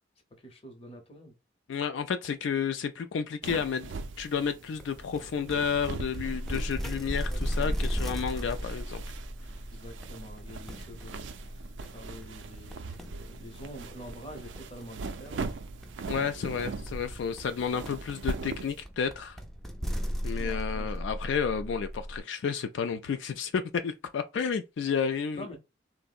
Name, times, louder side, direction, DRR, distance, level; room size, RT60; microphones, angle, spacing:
voice 1, 0.4-1.3 7.1-7.8 8.3-8.8 9.7-15.5 20.4-21.0 25.3-25.6, equal, 30° left, 0.7 m, -47 dB
voice 2, 1.7-3.9 4.2-9.0 16.1-19.4 20.2-25.6, left 6 dB, 80° left, 0.3 m, -31 dB
sound 1, 3.4-18.8, right 4 dB, 80° right, 0.4 m, -41 dB
sound 2, 4.8-22.2, equal, ahead, 0.3 m, -37 dB
3.5 x 2.0 x 2.4 m
head